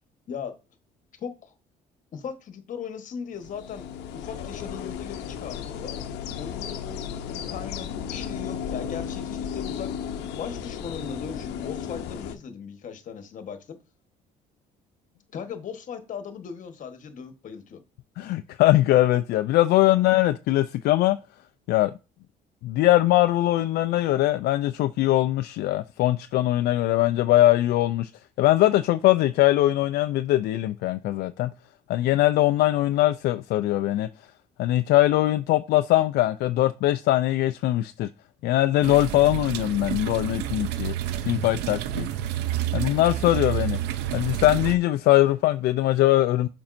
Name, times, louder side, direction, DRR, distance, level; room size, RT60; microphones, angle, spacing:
voice 1, 1.2-1.5 2.1-3.9 4.1-5.9 6.4-9.9 10.3-13.8 15.3-17.8, left 7 dB, 50° left, 1.2 m, -38 dB
sound 1, 3.4-12.3, left 8 dB, 90° left, 0.7 m, -34 dB
voice 2, 18.2-21.2 21.7-21.9 22.6-28.1 28.4-31.5 31.9-34.1 34.6-38.1 38.4-40.9 41.3-42.1 42.7-43.8 44.1-46.5, left 15 dB, 70° left, 0.4 m, -21 dB
sound 2, 38.8-44.8, right 12 dB, 90° right, 0.5 m, -29 dB
7.1 x 5.3 x 2.6 m
cardioid pair, 110°, 17 cm